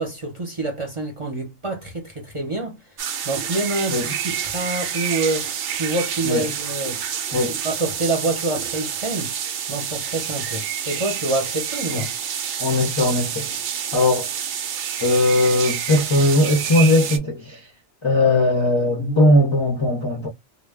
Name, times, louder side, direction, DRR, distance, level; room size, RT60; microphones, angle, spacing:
voice 1, 0.0-2.8 3.2-7.0 7.5-9.3 9.7-12.1, right 2 dB, 30° right, 0.7 m, -27 dB
sound 1, 3.0-17.2, right 8 dB, 75° right, 0.9 m, -28 dB
voice 2, 12.6-13.5 13.9-14.3 15.0-17.6 18.0-20.3, left 1 dB, 30° left, 0.5 m, -19 dB
2.2 x 2.2 x 3.3 m
omnidirectional pair, 1.2 m